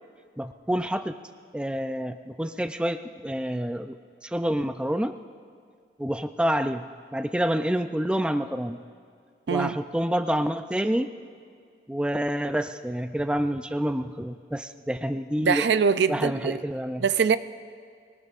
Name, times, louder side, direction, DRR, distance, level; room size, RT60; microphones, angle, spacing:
voice 1, 0.4-1.2 1.5-4.0 4.2-5.1 6.0-8.8 9.5-11.1 11.9-15.7 16.1-17.0, equal, 5° right, 8 dB, 0.4 m, -28 dB
voice 2, 15.4-16.6 17.0-17.4, right 6 dB, 80° right, 13 dB, 0.4 m, -23 dB
23.5 x 19.0 x 2.5 m, 2.2 s
head